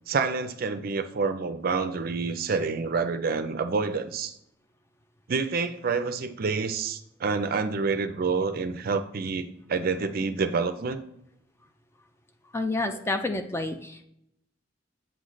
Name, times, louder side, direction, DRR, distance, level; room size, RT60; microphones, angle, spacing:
voice 1, 0.1-4.3 5.3-11.0, right 4 dB, 50° right, 10 dB, 0.4 m, -28 dB
voice 2, 12.5-14.0, left 2 dB, 15° left, 7 dB, 0.3 m, -29 dB
7.9 x 3.1 x 3.9 m, 0.77 s
head